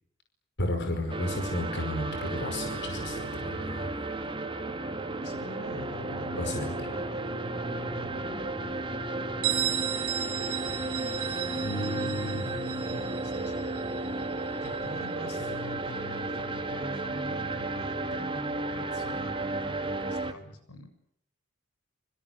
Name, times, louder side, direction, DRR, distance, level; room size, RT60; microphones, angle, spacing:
voice 1, 0.6-3.9 6.4-6.9 11.5-12.4, left 1 dB, 50° left, 5 dB, 5.2 m, -33 dB
sound 1, 1.1-20.3, right 2 dB, 25° right, 2.3 m, -33 dB
voice 2, 5.2-8.7 11.7-13.7 14.6-20.9, left 1 dB, 80° left, 8 dB, 7.2 m, -45 dB
Bell, 9.4-14.9, right 12 dB, 65° right, 6.5 m, -34 dB
27.0 x 26.0 x 8.2 m, 0.70 s
head